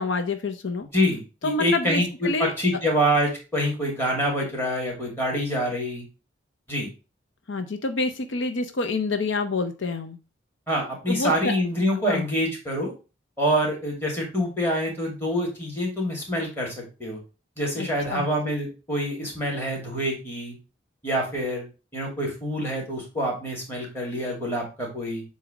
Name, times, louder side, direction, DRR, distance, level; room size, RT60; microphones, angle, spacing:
voice 1, 0.0-0.9 1.4-2.5 7.5-10.2 11.1-11.5 12.0-12.3 17.8-18.3, left 3 dB, 75° left, 8 dB, 0.7 m, -27 dB
voice 2, 0.9-6.0 6.7-6.9 10.7-12.9 13.4-17.2 17.6-20.5 21.0-21.6 21.9-25.2, equal, 10° left, -2 dB, 2.3 m, -26 dB
7.7 x 2.8 x 5.0 m, 0.32 s
head